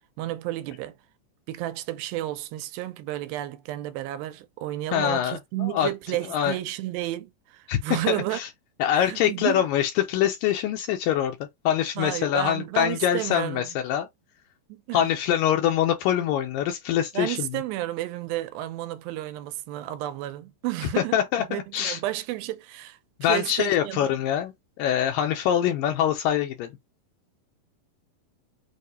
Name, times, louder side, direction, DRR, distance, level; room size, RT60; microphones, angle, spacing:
voice 1, 0.2-1.0 1.5-8.4 8.9-9.6 12.0-13.8 14.7-15.1 17.1-24.1, right 15 dB, 90° right, 2.4 m, -32 dB
voice 2, 4.9-5.9 6.3-6.6 7.7-7.8 8.1-8.5 8.8-11.4 11.7-14.1 14.9-17.5 21.1-22.0 23.2-24.5 24.8-26.7, left 10 dB, 80° left, 2.2 m, -24 dB
6.5 x 2.2 x 2.7 m
omnidirectional pair, 4.1 m